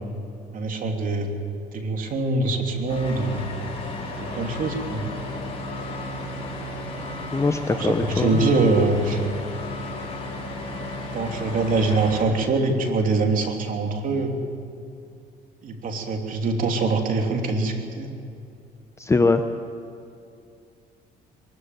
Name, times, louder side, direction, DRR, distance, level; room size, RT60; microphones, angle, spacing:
voice 1, 0.5-1.3 1.7-3.4 4.2-5.1 7.7-9.2 11.1-14.4 15.6-18.1, right 3 dB, 55° right, 3 dB, 3.2 m, -24 dB
sound 1, 2.9-12.2, left 2 dB, 35° left, 4.9 m, -33 dB
voice 2, 7.3-8.4 19.0-19.4, left 3 dB, 15° left, 7 dB, 0.9 m, -21 dB
23.0 x 13.5 x 9.3 m, 2.5 s
cardioid pair, 110°, 17 cm